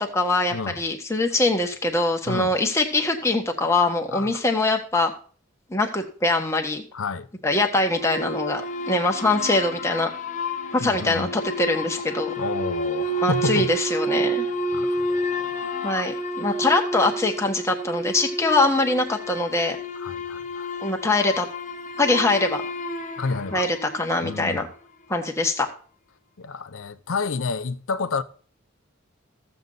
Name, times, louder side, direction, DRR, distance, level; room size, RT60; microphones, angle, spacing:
voice 1, 0.0-5.1 5.7-6.8 7.4-10.1 10.7-12.3 13.2-14.5 15.8-19.8 20.8-21.5 22.0-22.6 23.5-24.7 25.1-25.7, left 2 dB, 15° left, 1.5 m, -23 dB
voice 2, 4.1-4.4 6.9-7.3 10.8-11.3 12.4-13.7 14.7-16.1 20.0-20.7 23.2-23.7 24.2-24.7 26.4-28.2, left 4 dB, 70° left, 0.7 m, -30 dB
sound 1, 7.9-24.5, equal, 40° left, 0.9 m, -30 dB
14.5 x 7.8 x 4.0 m
head